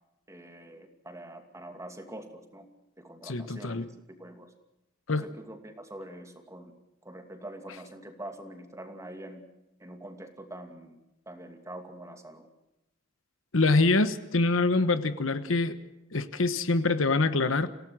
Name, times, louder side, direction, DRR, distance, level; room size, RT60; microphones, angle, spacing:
voice 1, 0.3-2.7 3.0-3.9 4.2-4.5 5.1-6.7 7.0-9.5 9.8-11.0 11.3-12.5, right 1 dB, 15° right, 5 dB, 2.6 m, -44 dB
voice 2, 3.2-3.9 5.1-5.3 13.5-15.8 16.1-17.7, left 3 dB, 70° left, 11 dB, 1.2 m, -25 dB
28.0 x 17.0 x 6.3 m, 0.92 s
head